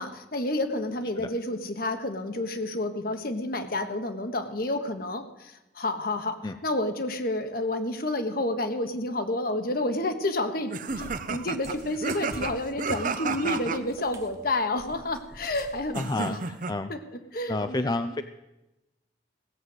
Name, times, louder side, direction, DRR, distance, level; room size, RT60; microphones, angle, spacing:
voice 1, 0.0-6.4 6.6-16.4 16.9-17.0 17.3-18.1, left 2 dB, 55° left, 8 dB, 1.3 m, -30 dB
sound 1, 10.7-13.8 15.9-16.7, right 4 dB, 45° right, 0.7 m, -32 dB
Cat, 10.9-16.0, right 1 dB, 20° right, 1.2 m, -46 dB
voice 2, 15.9-16.9 17.5-18.2, left 2 dB, 20° left, 9 dB, 0.4 m, -30 dB
16.5 x 7.7 x 7.9 m, 0.97 s
head